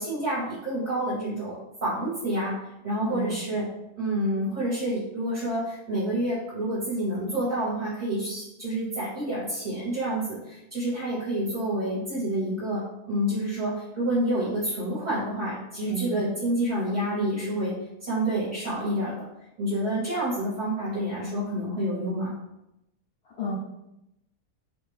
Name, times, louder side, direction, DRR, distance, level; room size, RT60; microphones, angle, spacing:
voice 1, 0.0-2.5 2.8-3.7 4.0-17.7 18.0-19.3 19.6-22.3, right 1 dB, 30° right, -10 dB, 1.0 m, -28 dB
voice 2, 3.0-3.4 15.8-16.2 23.2-23.5, right 1 dB, 55° left, -8 dB, 0.8 m, -33 dB
2.8 x 2.5 x 3.2 m, 0.89 s
omnidirectional pair, 1.6 m